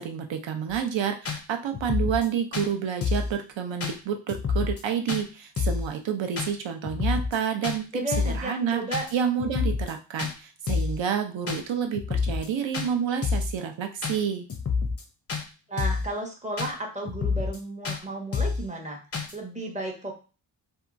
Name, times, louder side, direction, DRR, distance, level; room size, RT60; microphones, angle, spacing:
voice 1, 0.0-8.8 9.1-14.5, right 8 dB, 70° right, 5 dB, 0.6 m, -29 dB
sound 1, 0.7-0.8 1.2-1.4 1.7-2.3 2.5-2.7 3.0-3.3 3.8-4.0 4.3-4.8 5.1-5.2 5.6-5.9 6.4-6.5 6.8-7.4 7.6-7.8 8.1-8.4 8.9-9.1 9.4-9.9 10.2-10.3 10.7-11.0 11.5-11.6 11.9-12.5 12.7-12.9 13.2-13.5 14.0-14.2 14.5-15.0 15.3-15.4 15.8-16.1 16.6-16.7 17.0-17.6 17.8-18.0 18.3-18.6 19.1-19.3, left 5 dB, 30° left, 0.5 m, -28 dB
voice 2, 7.9-9.1 15.7-19.0 19.3-20.1, right 2 dB, 15° right, 0 dB, 0.6 m, -33 dB
2.8 x 2.3 x 2.5 m, 0.34 s
wide cardioid pair, 120°, 47 cm